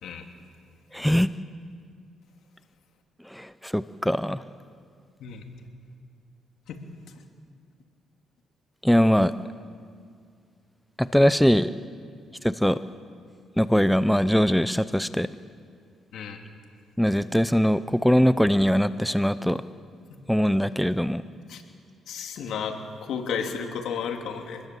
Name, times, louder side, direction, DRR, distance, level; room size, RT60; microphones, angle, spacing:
voice 1, 0.9-1.3 3.3-4.4 8.8-9.3 11.0-11.7 12.4-12.8 13.6-15.3 17.0-19.6 20.3-21.2, equal, ahead, 14 dB, 0.6 m, -21 dB
voice 2, 22.1-22.8 23.1-24.6, left 6 dB, 75° left, 4 dB, 2.7 m, -32 dB
25.5 x 20.0 x 7.7 m, 2.2 s
cardioid pair, 90°, 0 cm